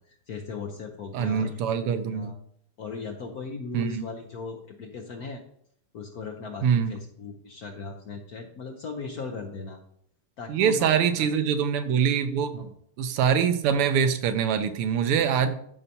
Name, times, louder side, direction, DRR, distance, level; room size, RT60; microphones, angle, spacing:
voice 1, 0.1-2.4 2.8-5.4 5.9-9.8 10.4-11.7 12.6-12.7, left 4 dB, 65° left, 2 dB, 0.9 m, -38 dB
voice 2, 1.1-2.3 3.7-4.1 6.6-6.9 10.5-12.7 13.0-15.6, right 7 dB, 90° right, 9 dB, 1.7 m, -24 dB
13.0 x 5.5 x 2.7 m, 0.69 s
omnidirectional pair, 2.4 m